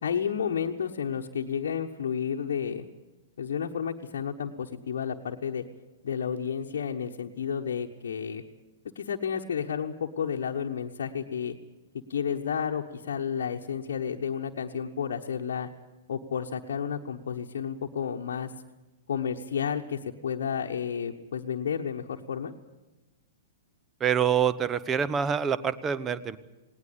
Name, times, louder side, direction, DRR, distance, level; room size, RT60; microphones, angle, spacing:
voice 1, 0.0-2.9 3.4-5.6 6.0-8.4 8.9-11.6 12.1-15.7 16.1-18.5 19.1-22.5, left 7 dB, 60° left, -1 dB, 1.1 m, -31 dB
voice 2, 24.0-26.4, right 8 dB, 20° right, 15 dB, 0.9 m, -26 dB
19.0 x 18.5 x 8.5 m, 1.1 s
figure-of-eight pair, 110°, 0 cm